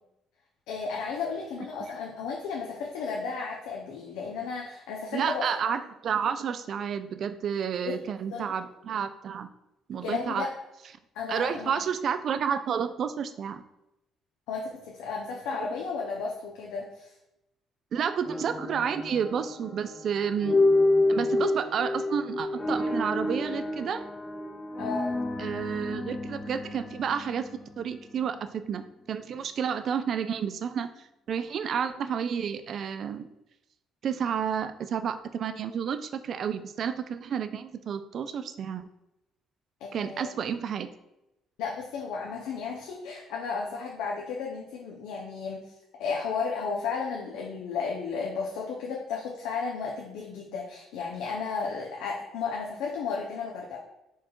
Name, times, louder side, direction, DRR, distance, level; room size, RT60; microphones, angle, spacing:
voice 1, 0.7-5.7 7.9-8.0 8.3-8.6 10.0-10.5 11.1-11.8 14.5-17.1 24.8-25.2 39.8-40.3 41.6-45.7 46.0-53.8, left 5 dB, 90° left, -1 dB, 0.6 m, -33 dB
voice 2, 5.1-9.5 9.9-10.5 11.3-13.6 17.9-20.6 21.1-24.0 25.4-27.5 27.8-30.9 31.3-33.3 34.0-38.9 39.9-40.9, right 7 dB, 55° right, 10 dB, 0.3 m, -30 dB
sound 1, 18.2-28.3, left 2 dB, 20° left, 0.5 m, -29 dB
4.5 x 2.4 x 4.4 m, 0.89 s
cardioid pair, 105°, 0 cm